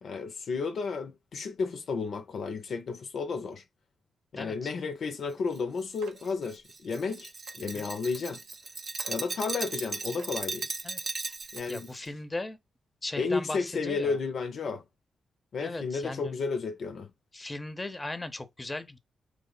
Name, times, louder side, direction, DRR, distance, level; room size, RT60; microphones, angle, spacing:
voice 1, 0.0-3.6 4.3-7.3 7.6-8.4 9.1-10.7 11.5-12.1 13.2-14.8 15.5-17.1, left 4 dB, 65° left, 0.5 m, -32 dB
voice 2, 4.4-4.7 7.7-7.9 10.8-11.0 11.7-12.6 13.0-14.2 15.6-16.3 17.3-19.0, left 2 dB, 25° left, 0.6 m, -37 dB
Glass, 5.5-11.9, right 3 dB, 45° right, 0.5 m, -37 dB
sound 1, 6.0-6.3 7.0-7.1 7.5-7.6 8.1-8.2 8.6-8.7 9.0-9.2 9.7-9.8 10.2-10.4 10.9-11.1 11.5-11.6, right 6 dB, 90° right, 0.6 m, -51 dB
3.1 x 2.1 x 3.9 m
hypercardioid pair, 40°, 0 cm